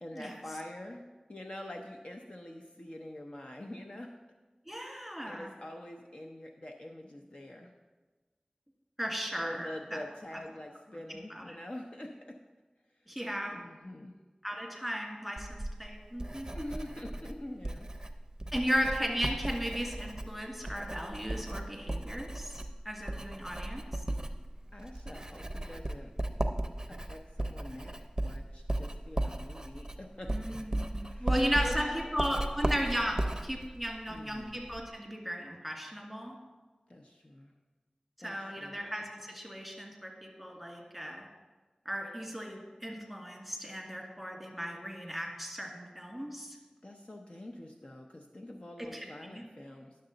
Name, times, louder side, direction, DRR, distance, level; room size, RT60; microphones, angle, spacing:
voice 1, 0.0-1.0 1.3-4.1 4.8-5.0 5.3-7.7 9.4-12.1 13.1-13.2 13.5-14.2 16.5-17.9 24.7-26.1 26.9-30.3 31.0-32.4 34.1-34.6 36.9-37.5 38.2-38.8 46.8-49.9, left 1 dB, 50° left, 2 dB, 0.7 m, -45 dB
voice 2, 4.7-5.5 9.0-10.0 11.3-11.6 13.1-13.5 14.4-16.5 18.5-22.6 22.9-23.8 30.3-36.3 38.2-41.2 41.9-46.6 48.8-49.4, equal, 5° left, -1 dB, 2.0 m, -36 dB
Writing, 15.4-34.9, right 1 dB, 25° right, 0.6 m, -36 dB
10.5 x 6.6 x 3.9 m, 1.2 s
wide cardioid pair, 55°, 2 cm